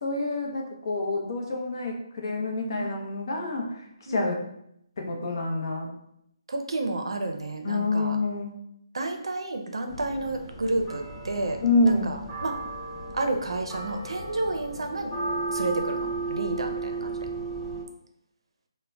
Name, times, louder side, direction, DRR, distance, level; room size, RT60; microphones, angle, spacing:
voice 1, 0.0-4.4 5.0-5.9 7.6-8.6 11.6-12.1, left 2 dB, 50° left, 1 dB, 0.6 m, -27 dB
voice 2, 6.5-8.2 8.9-11.6 11.8-12.6 13.1-15.1 15.5-17.2, right 2 dB, 80° right, 5 dB, 0.5 m, -30 dB
sound 1, 9.9-17.8, right 3 dB, 5° right, 0.4 m, -34 dB
2.1 x 2.1 x 3.7 m, 0.77 s
hypercardioid pair, 170°, 3 cm